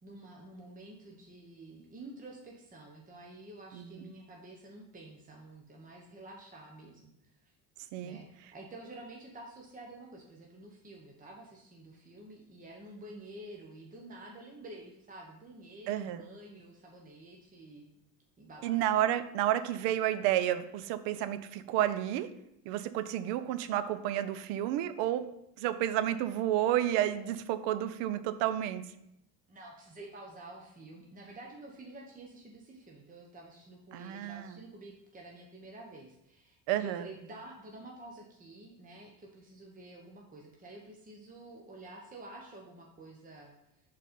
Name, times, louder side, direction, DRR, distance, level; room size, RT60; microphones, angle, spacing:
voice 1, 0.0-7.5 8.0-17.9 18.4-18.9 29.5-43.8, right 2 dB, 20° right, -1 dB, 0.9 m, -50 dB
voice 2, 3.7-4.1 7.9-8.2 15.9-16.2 18.6-22.3 22.7-25.3 25.6-28.8 33.9-34.5 36.7-37.1, right 12 dB, 85° right, 12 dB, 0.6 m, -31 dB
5.2 x 4.2 x 5.1 m, 0.80 s
cardioid pair, 100°, 42 cm